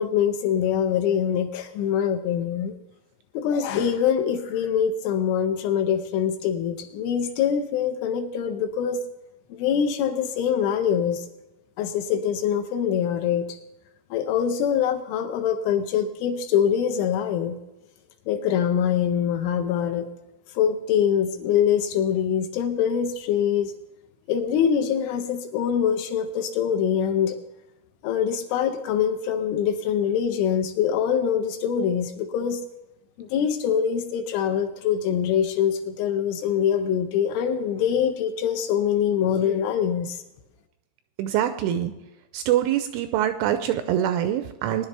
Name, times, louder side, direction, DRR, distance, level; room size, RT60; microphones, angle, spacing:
voice 1, 0.0-2.8 3.3-9.0 9.5-11.3 11.8-13.6 14.1-17.6 18.3-20.1 20.6-23.7 24.3-27.4 28.0-32.6 33.2-40.2, left 8 dB, 80° left, 6 dB, 3.0 m, -24 dB
voice 2, 41.2-41.9 42.3-44.9, right 11 dB, 85° right, 8 dB, 2.9 m, -24 dB
20.0 x 10.5 x 3.3 m, 0.96 s
omnidirectional pair, 6.0 m